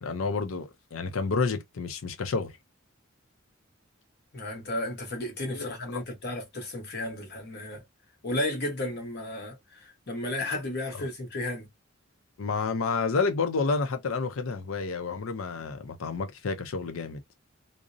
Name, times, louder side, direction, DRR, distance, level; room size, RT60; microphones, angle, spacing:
voice 1, 0.0-2.5 5.5-6.0 10.9-11.1 12.4-17.2, left 4 dB, 80° left, 0.5 m, -30 dB
voice 2, 4.3-7.8 8.2-11.7, left 1 dB, 55° left, 0.9 m, -33 dB
2.6 x 2.0 x 2.4 m
head